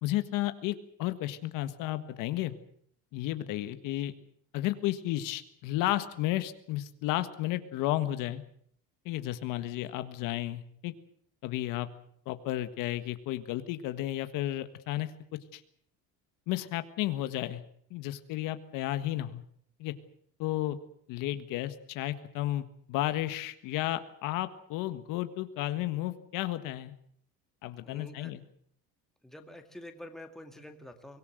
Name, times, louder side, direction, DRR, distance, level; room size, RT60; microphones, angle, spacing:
voice 1, 0.0-2.5 3.1-4.1 4.5-8.4 9.1-10.9 11.4-11.9 12.3-15.1 15.5-15.6 16.5-17.6 17.9-19.4 19.8-19.9 20.4-20.8 21.1-26.9 27.6-28.4, left 15 dB, 65° left, 11 dB, 1.6 m, -33 dB
voice 2, 27.8-28.3 29.2-31.2, left 1 dB, ahead, 5 dB, 2.1 m, -47 dB
24.0 x 19.0 x 7.9 m, 0.63 s
cardioid pair, 160°, 34 cm